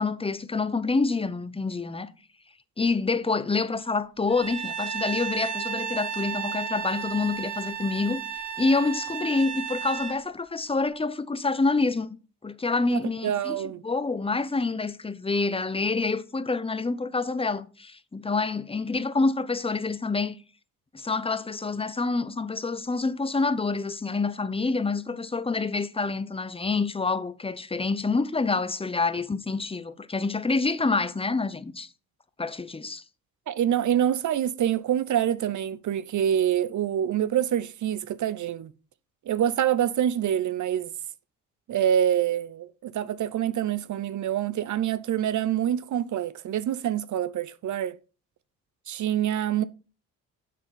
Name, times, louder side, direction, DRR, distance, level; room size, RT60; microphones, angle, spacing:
voice 1, 0.0-2.1 2.8-8.2 8.6-12.2 12.4-20.4 20.9-31.9 32.4-33.0, left 3 dB, 15° left, 0.8 m, -27 dB
Bowed string instrument, 4.3-10.2, right 8 dB, 70° right, 3.4 m, -33 dB
voice 2, 12.9-13.8 33.5-38.7 39.3-40.9 41.7-48.0 48.9-49.6, right 10 dB, 50° right, 0.7 m, -26 dB
7.4 x 6.1 x 5.3 m
hypercardioid pair, 55°, 39 cm